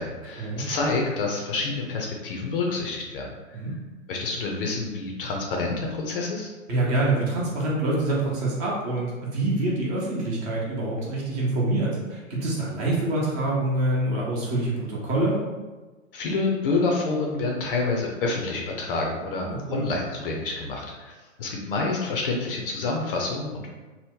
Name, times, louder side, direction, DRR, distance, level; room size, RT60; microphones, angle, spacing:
voice 1, 0.0-3.6 4.1-6.5 16.1-21.1 21.4-23.7, left 3 dB, 45° left, 0 dB, 0.6 m, -28 dB
voice 2, 6.7-15.4 19.4-19.8, right 2 dB, 30° right, -4 dB, 0.9 m, -26 dB
2.9 x 2.1 x 3.6 m, 1.2 s
hypercardioid pair, 125°, 39 cm